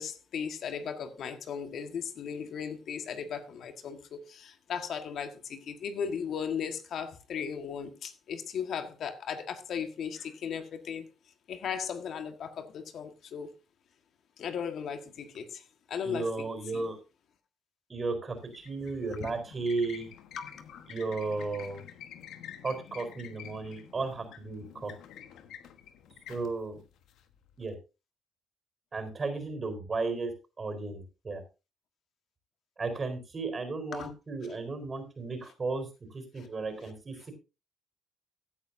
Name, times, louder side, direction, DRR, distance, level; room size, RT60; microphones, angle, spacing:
voice 1, 0.0-11.1 11.5-13.5 14.4-15.6 15.9-16.5 16.7-16.9 20.4-20.9 33.9-34.1, left 7 dB, 65° left, 1.6 m, -37 dB
voice 2, 16.0-17.0 17.9-20.1 20.9-21.8 22.6-24.9 26.3-26.8 27.6-27.7 28.9-30.3 30.6-31.4 32.8-37.2, right 3 dB, 35° right, 4.2 m, -34 dB
sound 1, 18.4-27.7, left 9 dB, 85° left, 1.3 m, -49 dB
16.0 x 9.7 x 2.7 m
cardioid pair, 90°, 0 cm